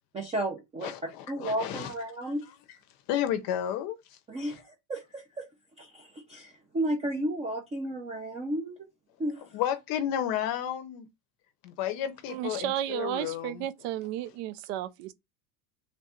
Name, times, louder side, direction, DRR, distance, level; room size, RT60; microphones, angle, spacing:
voice 1, 0.1-0.9 1.3-2.4 4.3-5.4 5.8-8.9 9.2-9.4, right 1 dB, 15° right, 0.4 m, -33 dB
voice 2, 0.8-1.9 3.1-4.0 4.5-4.6 9.5-11.1 11.6-13.7, left 10 dB, 50° left, 0.6 m, -32 dB
voice 3, 12.3-15.1, right 12 dB, 80° right, 0.6 m, -33 dB
3.4 x 2.5 x 4.2 m
cardioid pair, 160°, 46 cm